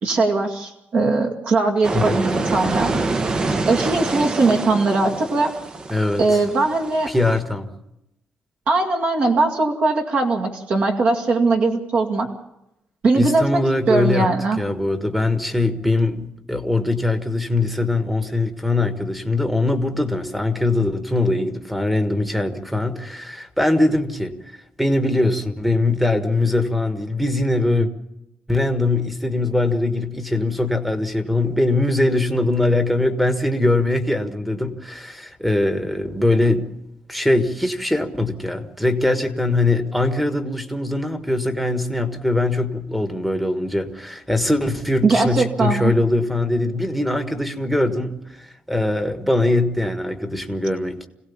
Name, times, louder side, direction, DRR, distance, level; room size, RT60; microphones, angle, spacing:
voice 1, 0.0-2.9 3.7-5.5 6.2-7.1 8.7-12.3 13.0-13.6 13.9-14.6 45.0-45.9, right 3 dB, 45° right, 2 dB, 2.2 m, -20 dB
sound 1, 1.8-7.4, right 3 dB, 25° right, 0.9 m, -26 dB
voice 2, 5.9-6.2 7.1-7.7 13.1-14.3 14.6-24.3 24.8-27.9 28.5-36.7 37.1-51.1, left 2 dB, ahead, 5 dB, 1.5 m, -21 dB
25.5 x 17.0 x 7.1 m, 0.88 s
cardioid pair, 170°, 3 cm